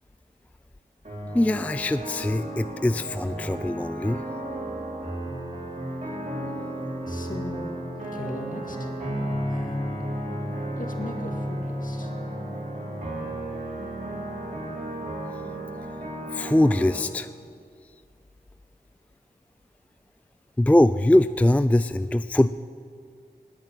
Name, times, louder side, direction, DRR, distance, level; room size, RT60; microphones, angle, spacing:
sound 1, 1.1-17.0, right 1 dB, 40° right, 5.0 m, -33 dB
voice 1, 1.3-4.3 16.3-17.3 17.8-17.9 20.6-22.7, left 1 dB, 10° left, 13 dB, 0.3 m, -22 dB
voice 2, 7.1-7.8 8.1-8.9 9.5-10.2 10.8-12.1, left 1 dB, 50° left, 3 dB, 2.0 m, -37 dB
19.0 x 6.5 x 9.0 m, 2.2 s
cardioid pair, 45°, 18 cm